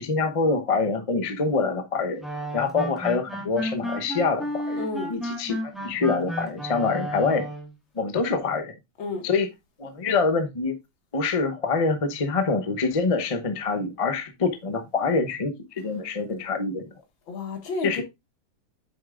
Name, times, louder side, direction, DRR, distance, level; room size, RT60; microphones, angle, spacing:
voice 1, 0.0-2.2 2.5-4.8 5.1-7.5 8.0-8.7 9.2-9.5 9.8-10.8 11.1-16.9 17.8-18.0, left 4 dB, 40° left, 0.4 m, -25 dB
sound 1, 2.2-7.7, equal, ahead, 1.5 m, -32 dB
voice 2, 4.8-5.2 9.0-9.3 17.3-18.0, left 3 dB, 75° left, 2.5 m, -31 dB
8.6 x 6.5 x 2.5 m
omnidirectional pair, 2.2 m